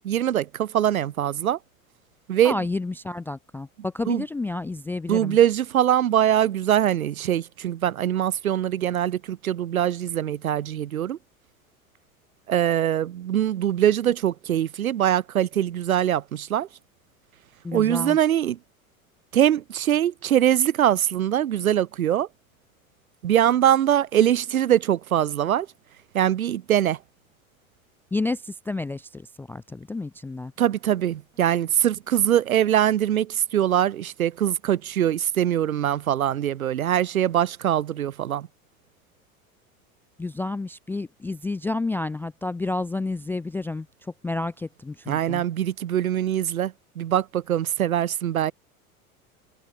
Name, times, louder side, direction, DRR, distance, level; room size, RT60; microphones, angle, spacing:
voice 1, 0.0-1.6 2.3-2.6 4.1-4.2 5.1-11.2 12.5-16.7 17.7-18.6 19.3-22.3 23.2-25.7 26.1-27.0 30.6-38.5 45.1-48.5, right 11 dB, 80° right, 0.6 m, -22 dB
voice 2, 2.4-5.4 17.6-18.2 28.1-30.5 40.2-43.9 44.2-45.4, left 2 dB, 5° left, 0.4 m, -30 dB
figure-of-eight pair, 80°, 42 cm